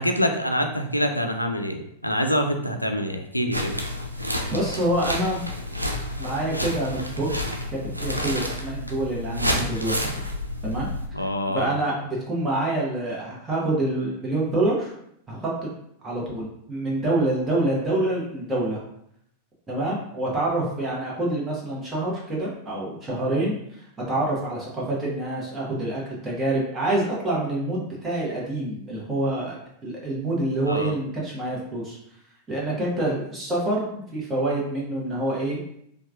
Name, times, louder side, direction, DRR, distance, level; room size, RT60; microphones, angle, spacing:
voice 1, 0.0-3.8 11.1-11.7 30.7-30.9, equal, 90° left, 5 dB, 0.3 m, -25 dB
sound 1, 3.5-11.1, left 1 dB, 85° right, 0.4 m, -29 dB
voice 2, 4.5-5.4 6.2-7.3 7.7-10.2 10.6-10.9 11.5-14.9 15.3-15.7 16.0-18.8 19.7-29.6 29.8-32.0 32.5-35.6, right 1 dB, 20° right, -5 dB, 1.0 m, -26 dB
4.4 x 2.3 x 2.4 m, 0.72 s
figure-of-eight pair, 90°, 0 cm